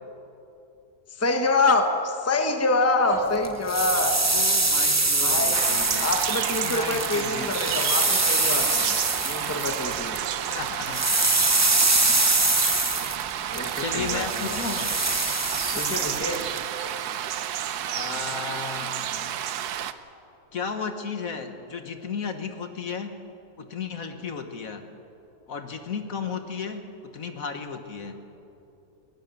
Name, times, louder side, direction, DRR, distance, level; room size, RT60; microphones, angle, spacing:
voice 1, 1.2-4.2 5.2-5.6 6.0-9.0 9.3-10.2 13.5-14.6 15.7-16.4, left 2 dB, 10° left, 5 dB, 1.2 m, -26 dB
voice 2, 3.0-3.5 4.3-6.2 6.6-7.5 10.5-11.1 13.8-14.9 17.9-19.1 20.5-23.2 23.6-24.8 25.5-26.9 27.1-28.2, left 5 dB, 60° left, 7 dB, 1.6 m, -34 dB
sound 1, 3.4-10.3 10.5-16.6, right 2 dB, 25° right, 0.3 m, -24 dB
sound 2, 5.5-19.9, right 10 dB, 75° right, 1.3 m, -30 dB
20.5 x 19.5 x 7.1 m, 2.8 s
omnidirectional pair, 1.7 m